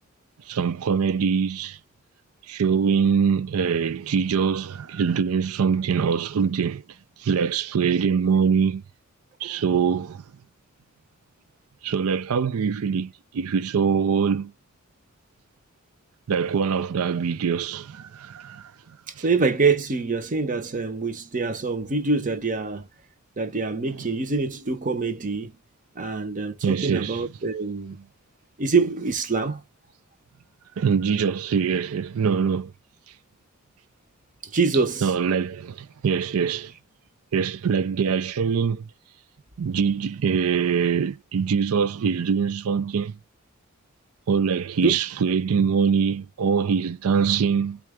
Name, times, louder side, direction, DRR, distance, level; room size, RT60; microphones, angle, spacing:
voice 1, 0.5-1.8 2.5-6.8 7.2-8.8 9.4-10.2 11.8-14.5 16.3-18.7 19.2-19.3 26.6-27.2 30.8-32.7 35.0-36.7 37.3-38.9 39.6-43.2 44.3-47.8, right 6 dB, 85° right, 0.4 m, -23 dB
voice 2, 19.2-22.9 23.4-25.5 26.0-28.1 28.6-29.6 34.4-35.1 44.8-44.9, right 4 dB, 40° right, 0.7 m, -25 dB
4.3 x 2.3 x 4.7 m
head